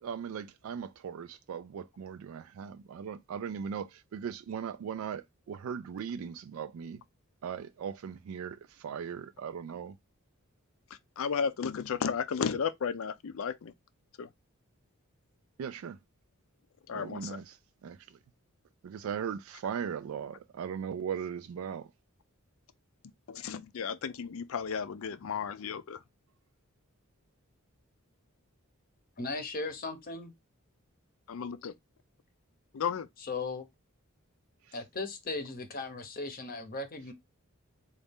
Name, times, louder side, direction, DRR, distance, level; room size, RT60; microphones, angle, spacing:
voice 1, 0.0-7.0 7.4-10.0 15.6-16.0 16.9-18.2 18.8-21.9 34.7-34.8, right 7 dB, 70° right, 0.3 m, -38 dB
voice 2, 11.2-13.7 14.2-14.3 16.9-17.4 23.3-26.0 31.3-31.7 32.7-33.1, left 6 dB, 65° left, 0.4 m, -33 dB
voice 3, 29.2-30.3 33.2-33.7 34.7-37.1, left 3 dB, 40° left, 0.8 m, -37 dB
4.0 x 2.4 x 3.4 m
head